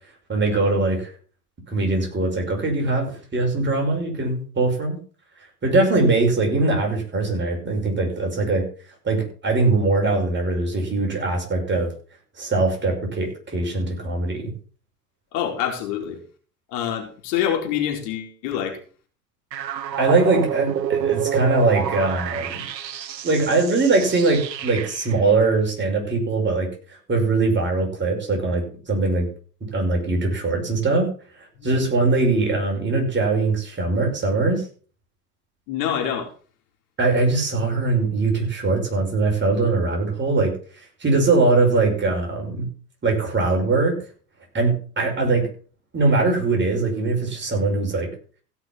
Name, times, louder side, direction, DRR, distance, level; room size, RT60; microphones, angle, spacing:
voice 1, 0.3-1.1 1.7-5.0 5.6-8.6 9.0-11.9 12.4-14.5 20.0-22.6 23.2-26.7 27.1-29.3 29.6-31.1 31.6-34.6 37.0-40.5 41.0-42.7 43.0-44.0 44.5-45.5 45.9-48.1, right 3 dB, 20° right, 1 dB, 5.6 m, -21 dB
voice 2, 15.3-16.2 16.7-18.8 31.6-31.7 35.7-36.3, left 9 dB, 55° left, 2 dB, 3.8 m, -26 dB
sound 1, 19.5-25.2, right 9 dB, 85° right, 0.9 m, -28 dB
16.5 x 6.0 x 5.9 m, 0.40 s
hypercardioid pair, 85°, 49 cm